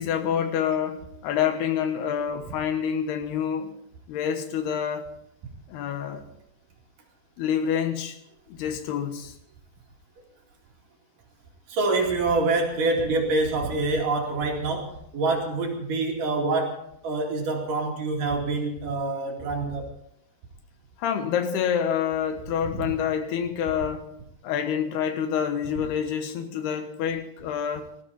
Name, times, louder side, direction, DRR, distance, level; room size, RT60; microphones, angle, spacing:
voice 1, 0.0-3.7 4.1-5.1 5.7-6.2 7.4-8.2 8.5-9.4 21.0-24.0 24.4-27.9, left 8 dB, 80° left, 8 dB, 3.3 m, -27 dB
voice 2, 11.7-19.9 22.7-22.9, right 3 dB, 55° right, 1 dB, 3.8 m, -26 dB
19.0 x 14.5 x 4.1 m, 0.71 s
omnidirectional pair, 4.6 m